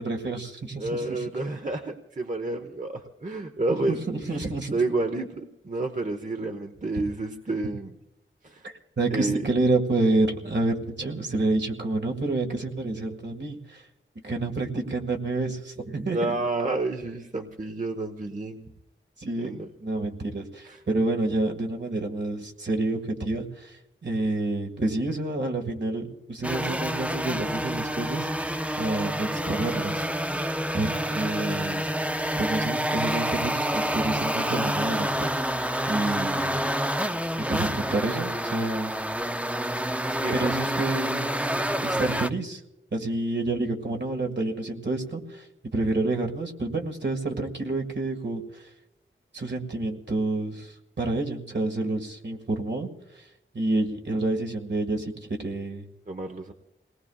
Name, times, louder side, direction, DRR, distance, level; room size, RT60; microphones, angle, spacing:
voice 1, 0.0-1.2 4.1-4.8 7.0-7.1 8.6-13.8 14.2-16.3 19.2-19.5 19.8-30.1 30.7-31.9 32.4-35.3 35.9-36.6 37.5-38.9 40.3-41.2 41.8-42.6 42.9-45.4 45.7-48.6 49.3-52.9 53.5-55.9, right 2 dB, 60° right, 2 dB, 1.8 m, -28 dB
voice 2, 0.8-4.0 4.3-4.4 4.7-7.9 8.4-8.7 9.1-9.4 16.1-18.7 19.4-19.7 20.6-20.8 40.1-40.5 56.1-56.5, right 2 dB, 40° right, 5 dB, 1.0 m, -30 dB
sound 1, 26.4-42.3, equal, 5° right, 0.5 m, -28 dB
28.5 x 19.0 x 2.4 m, 0.92 s
wide cardioid pair, 55°, 21 cm